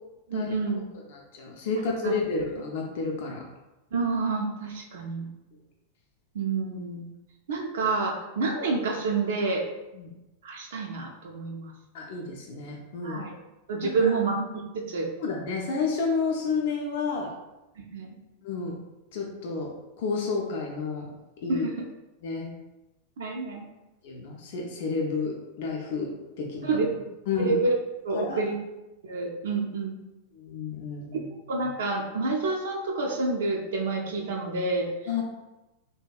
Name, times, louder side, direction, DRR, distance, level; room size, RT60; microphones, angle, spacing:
voice 1, 0.3-0.8 2.0-2.1 3.9-5.3 6.3-7.0 7.5-9.6 10.4-11.7 13.0-13.3 13.7-15.1 17.8-18.1 21.5-21.8 23.2-23.6 26.6-26.9 27.4-27.8 28.0-28.6 29.0-30.0 31.5-34.9, right 3 dB, 60° right, 0 dB, 0.4 m, -28 dB
voice 2, 1.1-3.4 9.9-10.1 11.9-13.2 13.8-14.1 15.2-17.3 18.4-18.8 19.1-19.7 20.0-21.1 21.4-21.7 22.2-22.5 24.0-26.8 27.3-27.6 28.1-28.4 30.4-31.3 35.1-35.2, left 4 dB, 50° left, 0 dB, 0.4 m, -30 dB
2.7 x 2.2 x 2.3 m, 1.0 s
figure-of-eight pair, 90°, 0 cm